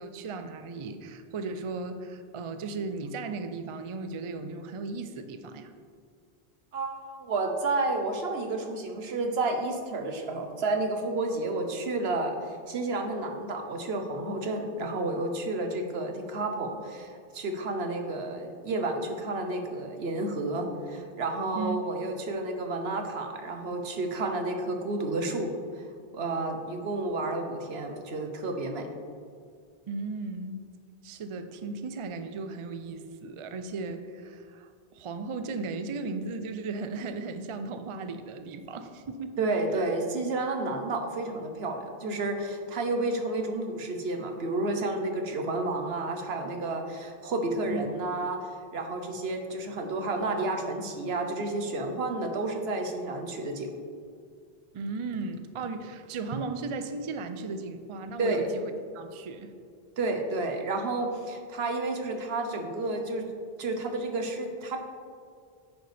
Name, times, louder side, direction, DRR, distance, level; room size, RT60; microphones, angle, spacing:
voice 1, 0.0-5.7 21.5-21.8 29.9-30.7 31.0-39.3 39.7-39.9 47.7-47.9 54.7-58.6 58.9-59.5, right 3 dB, 45° right, 8 dB, 0.4 m, -36 dB
voice 2, 6.7-25.8 26.1-28.9 39.4-53.7 58.2-58.5 60.0-63.2 63.6-64.8, right 2 dB, 75° right, 4 dB, 1.1 m, -31 dB
9.1 x 6.7 x 3.4 m, 2.2 s
omnidirectional pair, 1.1 m